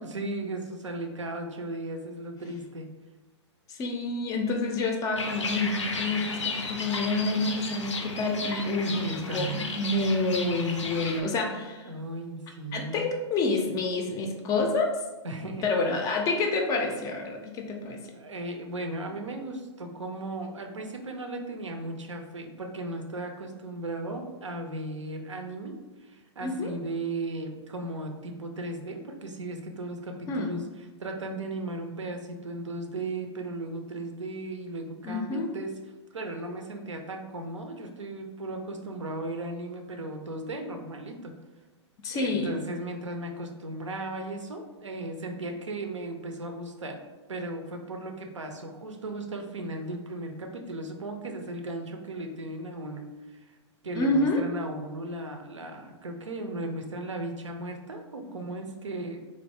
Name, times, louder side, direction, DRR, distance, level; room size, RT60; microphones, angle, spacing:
voice 1, 0.0-2.9 8.8-9.7 11.8-13.1 15.2-15.6 18.1-35.8 36.1-41.3 42.1-47.0 47.3-53.4 53.8-59.2, right 2 dB, 85° right, 4 dB, 0.5 m, -36 dB
voice 2, 3.7-11.9 12.7-15.0 15.6-18.0 26.4-26.7 30.3-30.5 35.0-35.5 42.0-42.6 53.9-54.4, left 2 dB, 25° left, 3 dB, 0.4 m, -28 dB
sound 1, 5.2-11.2, left 3 dB, 85° left, 0.5 m, -34 dB
3.2 x 2.5 x 2.7 m, 1.2 s
figure-of-eight pair, 110°, 15 cm